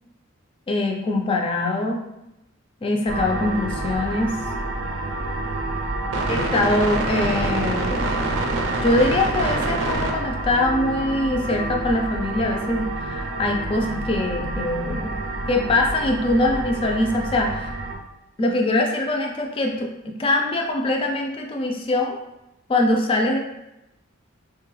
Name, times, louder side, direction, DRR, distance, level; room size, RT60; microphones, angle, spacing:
voice 1, 0.7-2.0 2.8-4.3 6.3-8.3 8.8-15.2 15.5-17.7 18.4-22.1 22.7-23.4, left 2 dB, 25° left, 1 dB, 0.3 m, -23 dB
sound 1, 3.1-18.0, right 2 dB, 70° right, 0.5 m, -27 dB
3.4 x 2.2 x 3.1 m, 0.91 s
head